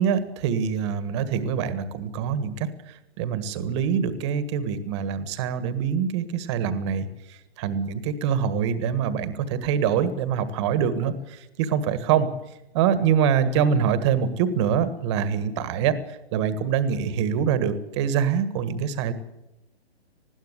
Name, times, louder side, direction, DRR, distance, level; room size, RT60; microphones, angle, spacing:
voice 1, 0.0-2.7 3.2-7.1 7.6-12.3 12.7-16.0 16.3-19.1, right 7 dB, 25° right, 13 dB, 1.6 m, -24 dB
20.0 x 16.0 x 8.2 m, 0.95 s
hypercardioid pair, 160°, 32 cm